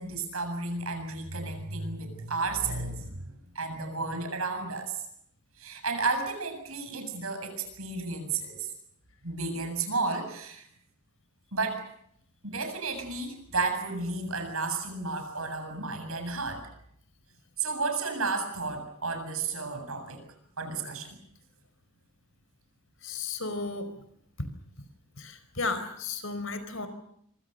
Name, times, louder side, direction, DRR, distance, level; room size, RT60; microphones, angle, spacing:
voice 1, 0.0-3.3 3.5-5.0 5.6-8.7 9.2-10.7 11.5-11.9 12.4-16.6 17.6-20.2 20.6-21.2, right 3 dB, 75° right, 7 dB, 7.7 m, -32 dB
voice 2, 23.0-23.9 25.2-26.9, left 3 dB, 65° left, 11 dB, 4.9 m, -34 dB
26.0 x 25.5 x 6.7 m, 0.70 s
head